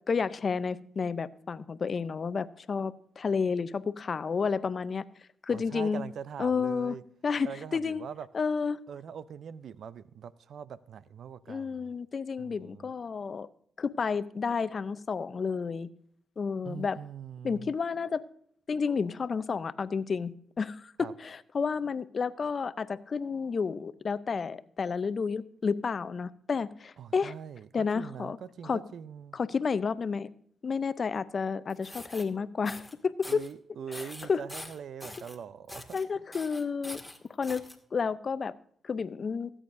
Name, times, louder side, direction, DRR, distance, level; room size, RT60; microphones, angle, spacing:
voice 1, 0.1-5.0 5.4-6.0 6.4-7.0 7.2-8.0 8.3-8.8 11.5-13.5 13.8-15.9 16.4-17.0 17.4-18.2 18.7-27.3 27.7-28.4 28.6-28.8 29.3-30.3 30.6-33.4 33.9-34.4 35.9-37.0 37.4-37.6 37.9-38.5 38.8-39.5, left 5 dB, 50° left, 16 dB, 0.6 m, -31 dB
voice 2, 5.5-7.0 7.4-8.3 8.9-11.9 12.4-12.9 16.6-17.7 21.0-21.1 27.0-29.4 33.3-36.0, right 7 dB, 70° right, 17 dB, 0.5 m, -42 dB
sound 1, 31.7-32.2 32.7-32.9 33.2-33.5 33.9-35.4 35.7-36.0 36.3-37.8, left 1 dB, 10° left, 1.7 m, -44 dB
18.5 x 8.7 x 2.6 m, 0.65 s
supercardioid pair, 45°, 0 cm